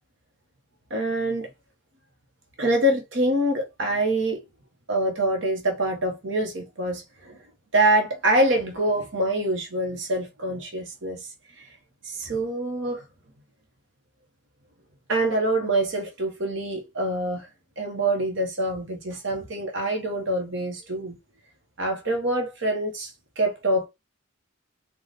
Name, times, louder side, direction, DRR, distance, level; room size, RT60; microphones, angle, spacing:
voice 1, 0.9-1.5 2.6-4.4 4.9-7.4 7.7-11.2 12.0-13.0 15.1-17.4 17.8-21.2 21.8-23.1 23.4-23.9, right 1 dB, 65° right, 1.0 m, -25 dB
4.0 x 2.4 x 3.2 m
head